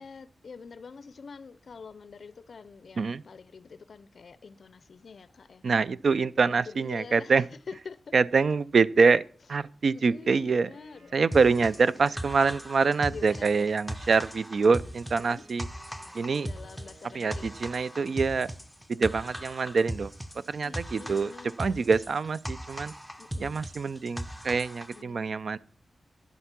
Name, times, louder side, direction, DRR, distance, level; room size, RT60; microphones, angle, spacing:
voice 1, 0.0-5.6 6.5-7.3 7.7-8.1 9.9-11.4 11.6-11.9 13.1-13.7 15.1-15.4 16.4-17.6 20.6-21.6 23.2-23.6 24.9-25.4, left 5 dB, 55° left, 0.5 m, -46 dB
voice 2, 5.6-7.4 8.1-9.2 9.5-10.7 11.1-15.7 16.1-16.5 17.1-18.5 18.9-20.1 20.5-21.3 21.6-22.9 23.4-25.6, right 4 dB, 55° right, 0.4 m, -25 dB
Wind instrument woodwind instrument, 10.5-18.1, right 2 dB, 85° right, 4.4 m, -57 dB
sound 1, 11.3-25.0, equal, 5° right, 0.6 m, -39 dB
10.5 x 8.0 x 5.9 m
wide cardioid pair, 145°, 0 cm